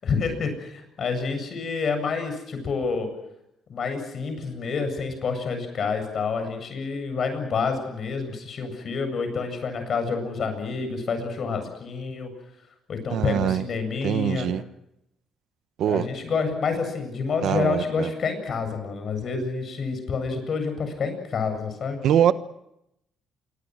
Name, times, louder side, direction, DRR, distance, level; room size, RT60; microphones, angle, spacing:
voice 1, 0.0-3.1 3.7-12.3 12.9-14.5 15.8-22.0, left 5 dB, 50° left, 8 dB, 7.8 m, -28 dB
voice 2, 13.1-13.6 14.0-14.6 15.8-16.1 17.4-18.1 22.0-22.3, right 10 dB, 75° right, 12 dB, 1.3 m, -23 dB
27.5 x 23.5 x 6.4 m, 0.82 s
cardioid pair, 90°, 0 cm